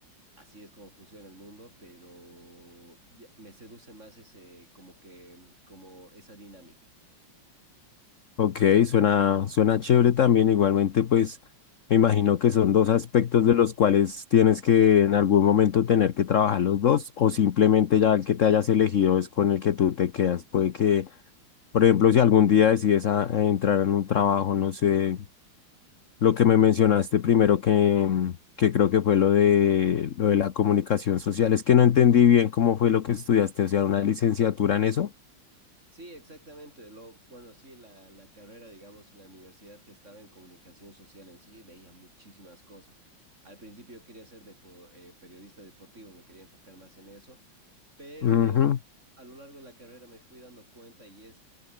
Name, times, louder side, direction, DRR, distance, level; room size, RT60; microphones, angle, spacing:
voice 1, 0.4-6.9 35.9-43.0 43.4-47.4 48.0-48.6 49.2-51.4, right 1 dB, 35° right, 8.4 m, -50 dB
voice 2, 8.4-11.4 11.9-21.1 21.7-25.2 26.2-35.1 48.2-48.8, left 9 dB, 50° left, 1.0 m, -21 dB
omnidirectional pair, 2.3 m